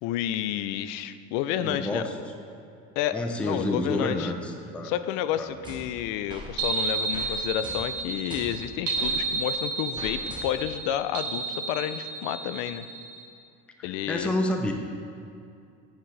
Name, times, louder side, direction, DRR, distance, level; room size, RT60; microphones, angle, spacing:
voice 1, 0.0-2.0 3.0-4.3 4.8-12.9 13.8-14.3, left 11 dB, 85° left, 13 dB, 0.5 m, -30 dB
voice 2, 1.6-2.3 3.1-4.9 5.4-5.5 13.8-14.7, left 1 dB, 5° left, 4 dB, 0.3 m, -29 dB
sound 1, 5.6-6.5 7.1-7.3 7.6-9.2 10.0-10.8, equal, 15° right, 0.9 m, -41 dB
sound 2, 6.6-13.2, right 4 dB, 50° right, 0.9 m, -31 dB
8.8 x 7.4 x 3.2 m, 2.5 s
cardioid pair, 160°, 32 cm